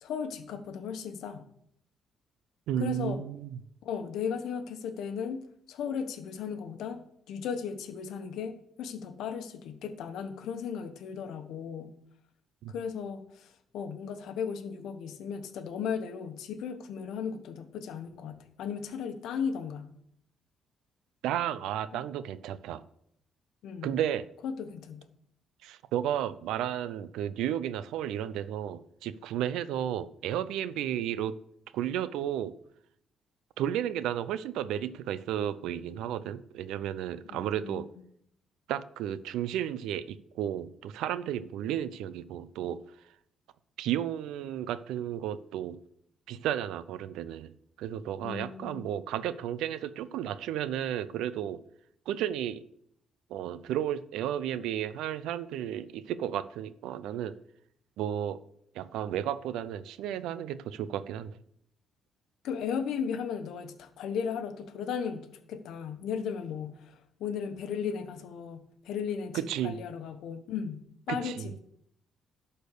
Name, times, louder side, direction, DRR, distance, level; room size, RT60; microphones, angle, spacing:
voice 1, 0.0-1.4 2.8-3.2 3.8-5.4 5.7-7.0 7.3-11.9 12.7-19.9 21.9-22.0 23.6-23.9 24.4-25.1 37.2-37.8 48.2-48.9 62.4-71.6, left 7 dB, 80° left, 8 dB, 1.1 m, -36 dB
voice 2, 2.7-3.6 12.6-12.7 21.2-22.8 23.8-24.3 25.6-31.4 31.7-32.5 33.6-37.9 38.7-42.8 43.8-45.8 46.3-51.6 52.1-52.6 53.3-57.4 58.0-58.4 58.7-61.3 69.3-69.8 71.1-71.6, right 10 dB, 90° right, 15 dB, 0.5 m, -33 dB
11.5 x 4.4 x 6.6 m, 0.73 s
cardioid pair, 90°, 0 cm